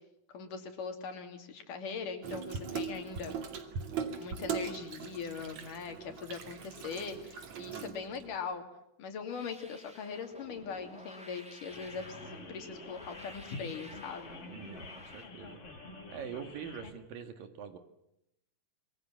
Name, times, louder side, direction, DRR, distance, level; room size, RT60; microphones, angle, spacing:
voice 1, 0.3-3.3 4.2-8.7 9.0-14.4, left 5 dB, 70° left, 5 dB, 4.5 m, -41 dB
Water tap faucet / Sink (filling or washing), 2.2-8.4, right 6 dB, 55° right, 3.5 m, -40 dB
sound 1, 9.2-15.3, equal, ahead, 2.4 m, -52 dB
sound 2, 11.7-16.9, left 3 dB, 45° left, 4.1 m, -49 dB
voice 2, 14.5-15.6 16.1-17.8, right 8 dB, 85° right, 8 dB, 3.6 m, -44 dB
26.0 x 24.0 x 7.6 m, 0.82 s
omnidirectional pair, 3.9 m